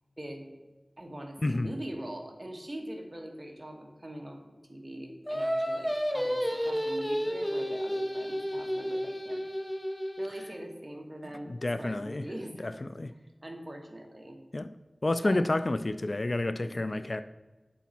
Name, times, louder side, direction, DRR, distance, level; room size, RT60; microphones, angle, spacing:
voice 1, 0.2-0.5 1.0-4.4 4.7-9.4 10.2-12.9 13.4-14.4 15.2-15.4 16.6-17.0, right 1 dB, 30° right, 2 dB, 1.6 m, -42 dB
voice 2, 1.4-1.7 11.5-12.3 12.6-13.1 14.5-14.7 15.0-17.2, left 2 dB, 55° left, 12 dB, 0.3 m, -29 dB
Singing, 5.3-10.6, equal, 15° left, 0.9 m, -31 dB
8.3 x 4.0 x 5.8 m, 1.2 s
wide cardioid pair, 45°, 0 cm